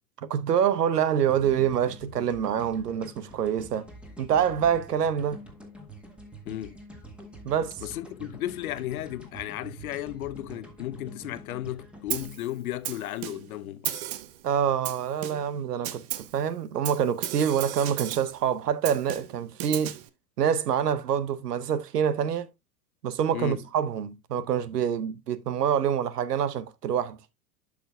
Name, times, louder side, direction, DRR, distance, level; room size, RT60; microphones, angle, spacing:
voice 1, 0.2-3.9 4.2-5.4 7.4-7.8 14.4-20.0 20.4-22.5 23.0-27.2, right 8 dB, 70° right, 0.9 m, -26 dB
sound 1, 1.3-13.5, right 1 dB, ahead, 1.7 m, -46 dB
voice 2, 6.5-6.8 7.8-14.0 23.3-23.6, left 14 dB, 60° left, 0.7 m, -34 dB
Snare drum, 12.1-12.4 12.8-13.6 13.8-14.4 14.8-15.6 15.8-16.4 16.8-18.4 18.8-20.1, right 13 dB, 25° right, 0.4 m, -35 dB
11.5 x 5.9 x 2.2 m
figure-of-eight pair, 90°, 49 cm